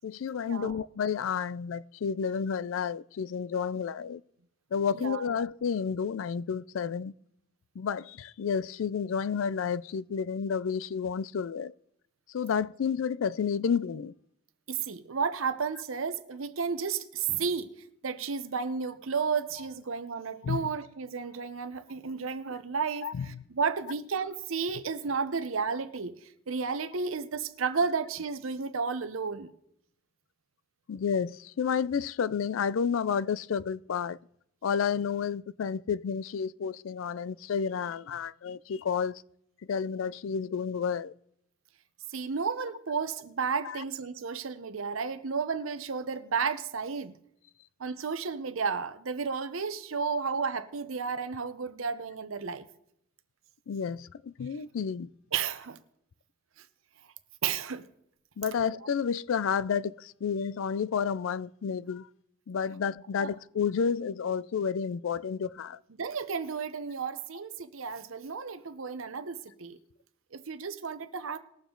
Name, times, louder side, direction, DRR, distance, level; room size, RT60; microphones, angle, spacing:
voice 1, 0.0-4.2 4.7-7.1 7.8-11.7 12.3-14.1 20.4-20.7 23.0-23.4 30.9-34.2 34.6-39.2 39.7-41.1 43.6-43.8 53.7-55.1 58.4-62.1 62.5-65.8, left 6 dB, 75° left, 0.4 m, -31 dB
voice 2, 4.9-5.3 14.7-17.7 18.0-26.2 26.5-29.5 42.1-47.2 47.8-52.7 55.3-55.8 57.4-57.9 63.2-63.3 66.0-69.8 70.3-71.4, right 5 dB, 85° right, 0.8 m, -32 dB
20.0 x 7.0 x 3.8 m
head